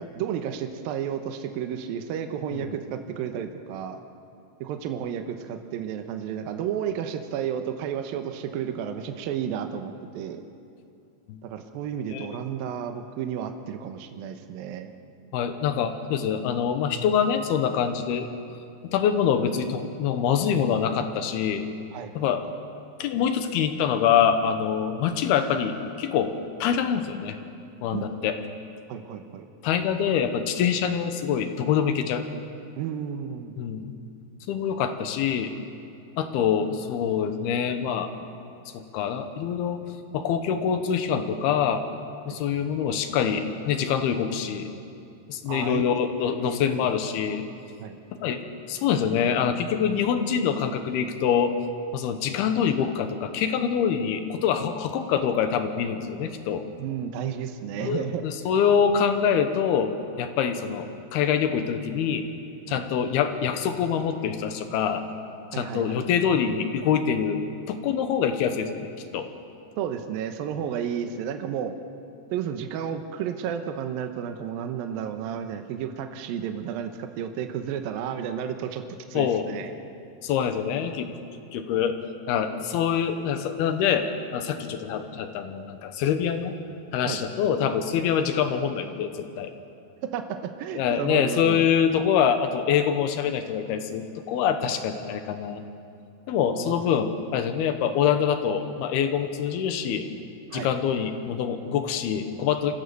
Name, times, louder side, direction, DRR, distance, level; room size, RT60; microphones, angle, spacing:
voice 1, 0.0-4.0 4.6-10.4 11.4-14.9 21.9-22.1 27.9-28.2 28.9-29.5 32.8-33.5 42.3-42.4 45.5-45.8 46.4-46.9 47.8-48.0 56.8-58.2 62.7-62.8 65.5-66.0 69.8-71.8 72.3-78.8 79.1-79.7 87.1-87.2 90.1-91.6 96.6-96.8 100.5-100.7, right 8 dB, 75° right, 6 dB, 2.4 m, -32 dB
voice 2, 15.3-18.3 18.8-21.6 22.2-22.4 23.0-26.3 26.6-27.4 27.8-28.4 29.6-32.3 33.6-33.9 34.5-35.5 36.2-38.1 38.7-39.8 40.1-41.8 42.3-44.7 45.3-47.4 48.1-48.4 48.7-51.6 51.9-56.7 57.8-59.9 60.2-62.2 62.7-65.0 65.5-67.4 67.7-69.3 79.1-79.5 80.2-81.1 81.5-82.0 82.3-86.6 86.9-89.5 90.7-95.6 96.3-100.1 100.5-102.8, left 8 dB, 70° left, 8 dB, 2.8 m, -25 dB
25.5 x 15.5 x 6.9 m, 2.6 s
omnidirectional pair, 5.1 m